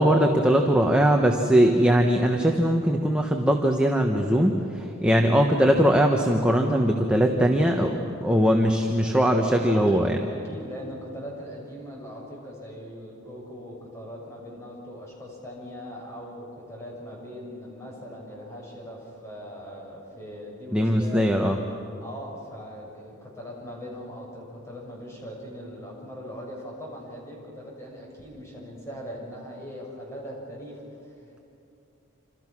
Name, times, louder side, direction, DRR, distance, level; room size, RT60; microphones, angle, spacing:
voice 1, 0.0-10.2 20.7-21.6, equal, 5° right, 2 dB, 1.1 m, -21 dB
voice 2, 9.1-21.3 22.0-31.4, equal, 15° left, -3 dB, 6.9 m, -40 dB
28.0 x 27.0 x 6.1 m, 2.8 s
head